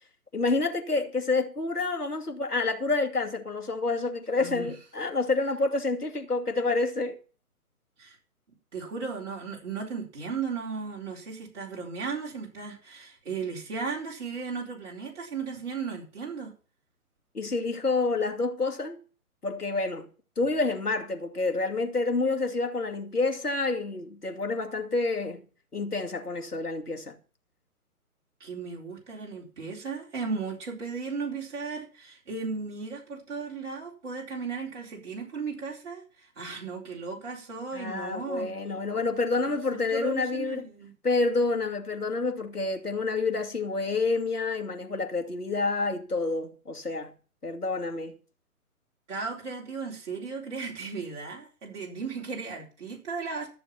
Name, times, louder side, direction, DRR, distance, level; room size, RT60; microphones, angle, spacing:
voice 1, 0.3-7.2 17.3-19.0 19.4-20.1 20.4-25.4 25.7-27.1 37.7-40.7 41.0-47.1 47.4-48.2, left 3 dB, 90° left, 2.6 m, -28 dB
voice 2, 4.4-4.7 8.0-8.2 8.7-16.5 28.4-38.5 39.5-40.9 49.1-53.5, right 5 dB, 50° right, 4.3 m, -36 dB
14.0 x 7.2 x 5.9 m
figure-of-eight pair, 140°, 45 cm